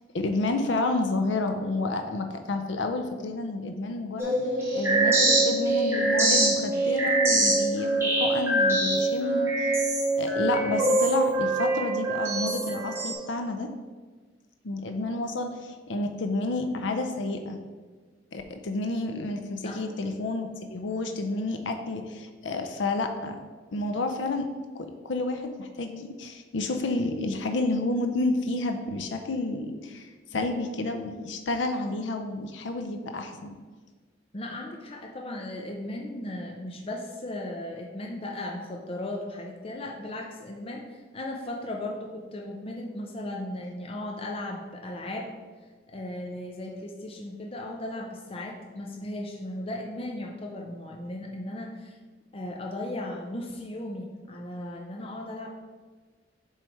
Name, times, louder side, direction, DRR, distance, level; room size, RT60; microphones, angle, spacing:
voice 1, 0.1-4.4 4.7-9.7 10.2-13.7 14.6-17.6 18.3-23.4 23.7-24.5 24.7-33.6, left 2 dB, 75° left, 5 dB, 0.5 m, -30 dB
sound 1, 4.2-13.1, right 2 dB, 15° right, 1.4 m, -24 dB
voice 2, 34.3-45.3 45.9-52.0 52.3-55.5, left 1 dB, 30° left, 0 dB, 0.6 m, -36 dB
7.6 x 3.3 x 4.6 m, 1.4 s
head